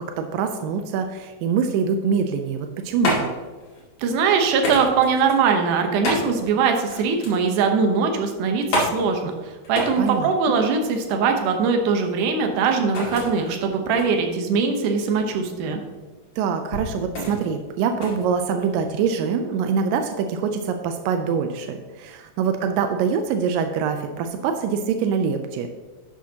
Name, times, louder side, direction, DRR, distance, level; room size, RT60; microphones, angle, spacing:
voice 1, 0.0-3.3 10.0-10.6 16.4-25.7, right 6 dB, 90° right, 6 dB, 2.3 m, -24 dB
sound 1, 2.5-19.1, equal, 55° left, 3.3 m, -31 dB
voice 2, 4.0-15.8, right 5 dB, 70° right, 4 dB, 2.4 m, -21 dB
11.5 x 8.6 x 2.9 m, 1.3 s
omnidirectional pair, 3.9 m